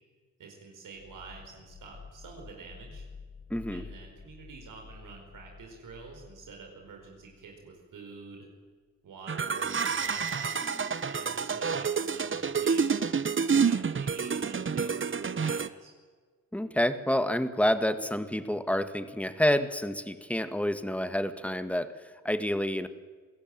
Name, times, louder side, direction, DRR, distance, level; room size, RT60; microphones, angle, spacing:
voice 1, 0.4-3.0 3.7-8.5 9.0-10.8 11.0-13.1 13.5-15.9, right 4 dB, 85° right, 1 dB, 5.0 m, -47 dB
sound 1, 0.9-7.7, left 5 dB, 75° left, 5.4 m, -50 dB
voice 2, 3.5-3.8 10.8-11.1 16.5-22.9, left 1 dB, 5° left, 10 dB, 1.9 m, -29 dB
sound 2, 9.3-15.7, right 6 dB, 40° right, 1.0 m, -28 dB
27.5 x 17.0 x 9.0 m, 1.5 s
cardioid pair, 60°, 31 cm